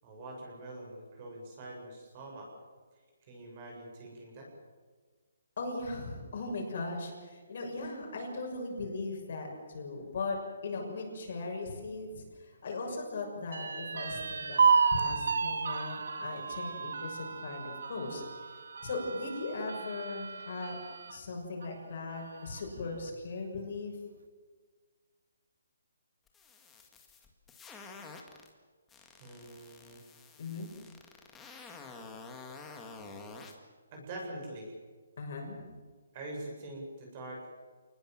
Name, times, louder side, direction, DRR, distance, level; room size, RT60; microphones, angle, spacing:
voice 1, 0.0-2.5 2.9-4.5 29.2-30.0 33.9-34.7 36.1-37.5, right 1 dB, 25° right, 0 dB, 7.1 m, -44 dB
voice 2, 5.6-14.6 14.9-18.2 18.8-20.8 21.1-23.9 30.4-30.7 35.2-35.6, left 3 dB, 45° left, 1 dB, 6.5 m, -38 dB
sound 1, 13.5-21.2 21.6-21.7 22.1-22.8, right 5 dB, 65° right, 2.2 m, -32 dB
sound 2, 26.3-28.5 28.9-33.5, left 4 dB, 5° left, 2.1 m, -49 dB
28.5 x 20.0 x 7.6 m, 1.5 s
hypercardioid pair, 175°, 0 cm